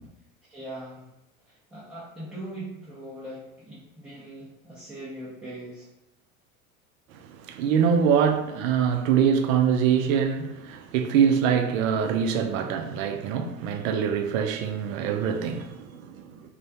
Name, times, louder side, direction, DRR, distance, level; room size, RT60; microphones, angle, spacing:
voice 1, 0.5-1.0 1.5-5.9, right 1 dB, 5° right, 0.5 m, -40 dB
voice 2, 7.4-16.4, right 7 dB, 65° right, 0.5 m, -24 dB
2.4 x 2.0 x 2.7 m
hypercardioid pair, 90°, 43 cm